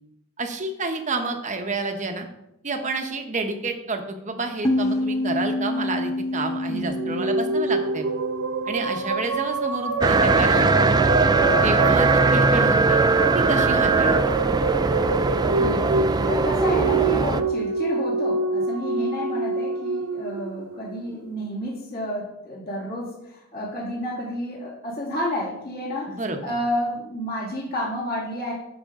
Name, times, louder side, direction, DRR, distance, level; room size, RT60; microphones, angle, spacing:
voice 1, 0.4-2.3 2.6-8.1 8.7-11.0 11.6-13.0 13.3-14.3 26.1-26.5, right 3 dB, 35° right, 5 dB, 1.0 m, -29 dB
sound 1, 4.6-10.0, left 1 dB, 15° left, 0.7 m, -28 dB
voice 2, 6.7-7.3 15.4-28.5, equal, 45° left, -5 dB, 2.4 m, -30 dB
sound 2, 6.8-21.3, right 3 dB, 80° right, 0.7 m, -26 dB
sound 3, 10.0-17.4, right 3 dB, 20° right, 0.3 m, -20 dB
12.5 x 5.2 x 3.7 m, 0.83 s
head